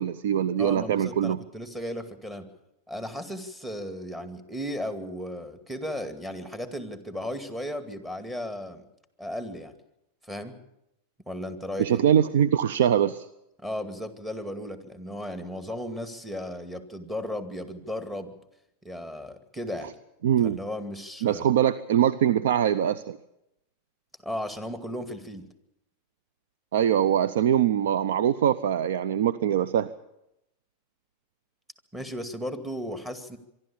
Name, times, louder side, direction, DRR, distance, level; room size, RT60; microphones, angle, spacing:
voice 1, 0.0-1.4 11.8-13.3 20.2-20.6 21.2-23.2 26.7-29.9, right 9 dB, 75° right, 15 dB, 0.7 m, -23 dB
voice 2, 0.6-2.5 2.9-8.8 9.2-9.7 10.2-10.5 11.3-12.0 13.6-18.3 18.8-19.9 20.4-21.5 24.2-25.5 31.9-33.4, equal, 10° right, 8 dB, 2.3 m, -35 dB
24.5 x 12.5 x 8.6 m, 0.85 s
hypercardioid pair, 105°, 0 cm